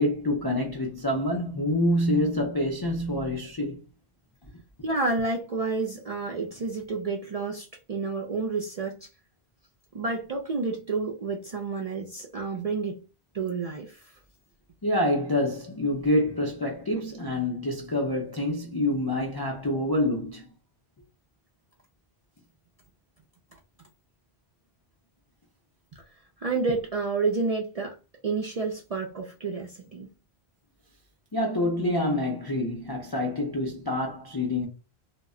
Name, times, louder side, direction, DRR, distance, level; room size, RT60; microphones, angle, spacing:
voice 1, 0.0-3.8 14.8-20.5 31.3-34.7, left 1 dB, 40° left, 0.3 m, -27 dB
voice 2, 4.8-9.1 9.9-13.0 13.3-14.2 26.4-28.0 28.2-30.1, right 4 dB, 55° right, 0.4 m, -30 dB
2.1 x 2.1 x 3.6 m
omnidirectional pair, 1.1 m